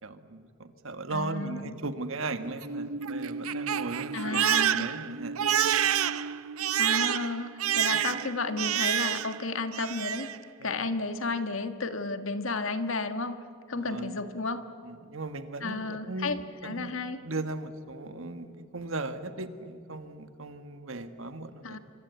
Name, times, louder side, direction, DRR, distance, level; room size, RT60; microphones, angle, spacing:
voice 1, 0.0-5.4 7.8-8.0 10.6-10.9 13.7-14.2 14.8-16.9 17.2-21.8, right 2 dB, 70° right, 9 dB, 1.5 m, -37 dB
voice 2, 1.1-1.7 4.1-5.0 6.8-10.3 10.6-13.4 13.7-14.6 15.6-17.2 21.6-21.8, left 3 dB, 70° left, 8 dB, 1.6 m, -32 dB
Crying sobbing, 2.4-9.4 9.7-10.4, right 9 dB, 90° right, 0.7 m, -28 dB
29.0 x 25.0 x 8.3 m, 2.3 s
head